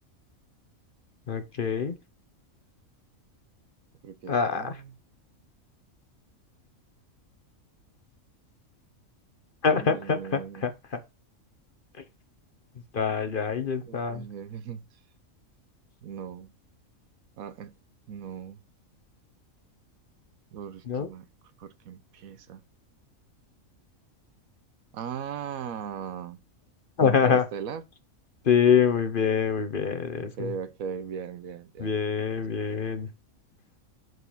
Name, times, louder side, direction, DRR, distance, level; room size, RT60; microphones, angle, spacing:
voice 1, 1.3-2.0 4.3-4.8 9.6-11.0 12.0-12.1 12.9-14.3 20.9-21.1 27.0-27.4 28.4-30.5 31.8-33.1, left 6 dB, 45° left, 0.9 m, -25 dB
voice 2, 4.0-4.9 9.8-10.6 13.9-14.9 16.0-16.5 17.4-17.7 18.1-18.6 20.5-21.3 21.6-22.6 24.9-26.4 27.0-27.8 30.1-31.9, right 7 dB, 85° right, 1.2 m, -38 dB
6.8 x 4.7 x 5.6 m
omnidirectional pair, 1.4 m